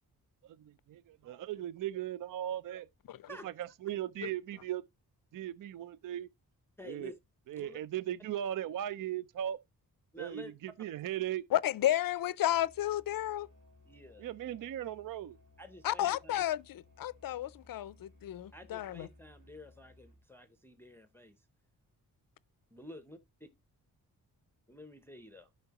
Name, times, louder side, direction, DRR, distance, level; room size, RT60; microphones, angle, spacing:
voice 1, 0.4-2.9 3.4-4.8 5.3-6.3 6.8-7.1 7.5-9.6 10.2-11.4 14.2-15.4, right 11 dB, 60° right, 0.5 m, -38 dB
voice 2, 6.8-7.2 7.6-7.8 10.1-10.5 13.8-14.3 15.6-16.3 18.5-21.4 22.7-23.2 24.7-25.5, left 1 dB, 5° left, 0.6 m, -50 dB
voice 3, 11.5-13.5 15.8-19.1, left 13 dB, 65° left, 0.5 m, -32 dB
Musical instrument, 12.5-20.3, left 2 dB, 75° right, 4.7 m, -61 dB
12.0 x 5.6 x 2.9 m
wide cardioid pair, 135°, 37 cm